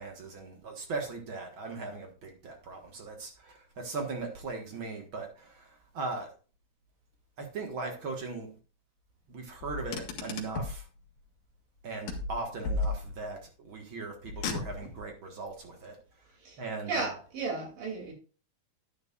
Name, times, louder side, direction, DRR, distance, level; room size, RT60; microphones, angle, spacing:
voice 1, 0.0-6.3 7.4-8.5 9.3-10.9 11.8-16.0 16.6-17.1, right 3 dB, 50° right, 1.8 m, -39 dB
Car, 9.6-10.8 12.1-13.4 14.2-15.1, left 3 dB, 65° left, 2.4 m, -34 dB
voice 2, 16.4-18.1, right 3 dB, 70° right, 4.4 m, -35 dB
11.0 x 9.4 x 2.4 m
omnidirectional pair, 3.9 m